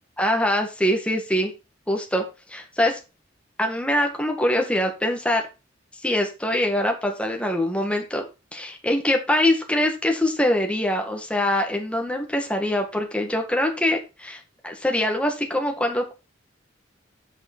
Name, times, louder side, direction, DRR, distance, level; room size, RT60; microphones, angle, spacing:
voice 1, 0.2-1.5 1.9-2.2 2.5-3.0 3.6-5.4 6.0-8.2 8.5-16.1, left 1 dB, 5° left, 3 dB, 1.8 m, -23 dB
8.0 x 6.1 x 4.5 m, 0.28 s
head